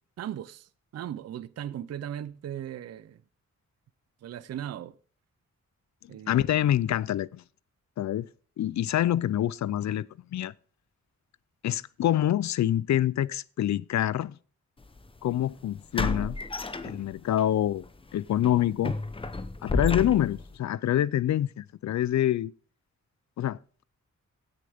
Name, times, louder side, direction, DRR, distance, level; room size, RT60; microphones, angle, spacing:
voice 1, 0.2-3.2 4.2-5.0 6.1-6.7, right 10 dB, 60° right, 0.5 m, -38 dB
voice 2, 6.3-7.4 8.0-8.3 8.6-10.1 10.3-10.5 11.6-14.3 15.2-16.4 16.8-17.9 18.1-18.9 19.6-22.5 23.4-23.6, left 12 dB, 65° left, 0.4 m, -26 dB
sound 1, 14.8-15.0 15.9-17.4 17.8-18.0 18.4-20.5, left 2 dB, 20° left, 0.7 m, -31 dB
16.5 x 6.6 x 3.5 m
wide cardioid pair, 145°, 30 cm